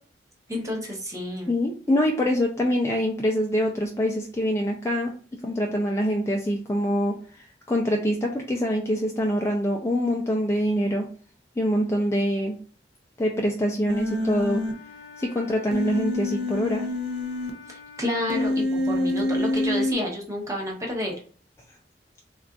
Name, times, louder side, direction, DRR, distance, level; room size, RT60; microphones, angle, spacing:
voice 1, 0.5-1.5 17.7-21.1, left 1 dB, 20° right, 0 dB, 0.8 m, -30 dB
voice 2, 1.5-5.1 5.4-11.1 11.6-12.6 13.2-14.6 15.2-16.9, equal, 15° left, 0 dB, 0.3 m, -25 dB
Human voice, 13.9-14.7 15.7-17.5 18.3-19.9, left 1 dB, 70° right, 0.6 m, -26 dB
Wind instrument woodwind instrument, 14.0-18.6, left 5 dB, 70° left, 0.7 m, -47 dB
3.7 x 2.4 x 2.3 m, 0.43 s
head